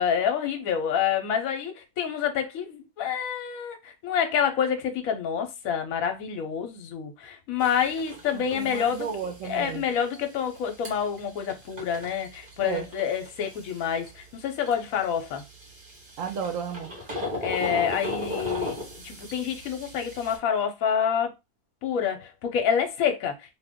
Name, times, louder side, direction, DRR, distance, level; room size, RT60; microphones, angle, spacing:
voice 1, 0.0-9.1 9.4-15.4 17.4-18.7 19.0-21.3 21.8-23.3, left 8 dB, 65° left, 1.0 m, -27 dB
sound 1, 7.6-20.4, left 1 dB, 35° right, 1.1 m, -38 dB
voice 2, 8.3-9.8 12.6-12.9 16.2-16.9, right 7 dB, 65° right, 0.9 m, -33 dB
2.6 x 2.4 x 3.5 m
omnidirectional pair, 1.7 m